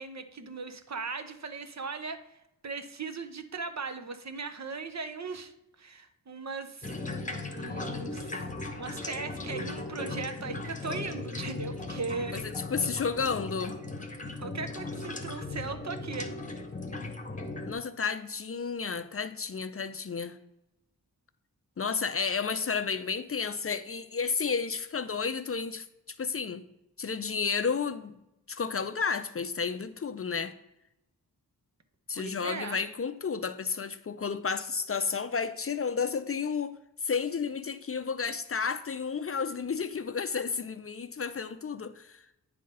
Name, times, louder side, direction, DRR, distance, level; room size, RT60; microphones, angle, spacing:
voice 1, 0.0-5.5 5.8-6.9 7.5-8.4 8.8-12.4 14.4-16.3 32.1-32.8, right 4 dB, 50° right, 0.8 m, -38 dB
sound 1, 6.8-17.7, left 2 dB, 20° left, 1.0 m, -37 dB
voice 2, 12.3-13.8 17.7-20.4 21.8-25.9 26.2-26.6 27.0-28.1 28.5-30.5 32.1-36.7 37.0-42.2, left 5 dB, 40° left, 0.5 m, -32 dB
9.4 x 3.9 x 5.4 m
wide cardioid pair, 80°, 36 cm